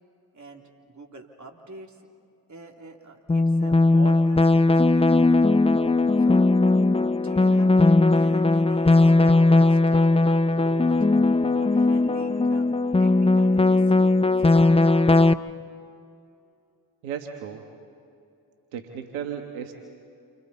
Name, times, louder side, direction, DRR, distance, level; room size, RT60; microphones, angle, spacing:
voice 1, 0.3-2.1 2.5-5.5 6.2-6.5 7.1-7.8 8.1-11.0 11.5-12.7 13.0-15.2, right 2 dB, 40° right, 2 dB, 3.2 m, -44 dB
sound 1, 3.3-15.3, left 2 dB, 15° left, 0.7 m, -19 dB
voice 2, 17.0-17.7 18.7-19.7, right 8 dB, 85° right, 4 dB, 1.3 m, -34 dB
29.0 x 25.5 x 4.3 m, 2.5 s
hypercardioid pair, 40°, 45 cm